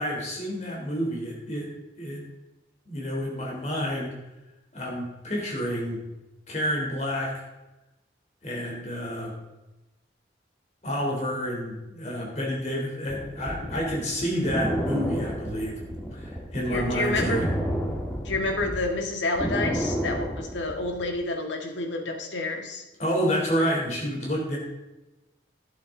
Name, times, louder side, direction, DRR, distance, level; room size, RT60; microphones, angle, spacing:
voice 1, 0.0-1.7 2.0-2.2 2.9-4.2 4.7-6.0 6.5-7.3 8.4-9.3 10.8-15.8 16.1-17.5 23.0-24.6, equal, 40° left, -2 dB, 3.4 m, -29 dB
sound 1, 13.1-18.8 19.1-21.1, equal, 5° left, 1.8 m, -30 dB
voice 2, 16.7-17.4 18.2-22.8, left 2 dB, 85° left, 3 dB, 1.7 m, -29 dB
12.0 x 11.0 x 3.8 m, 1.0 s
head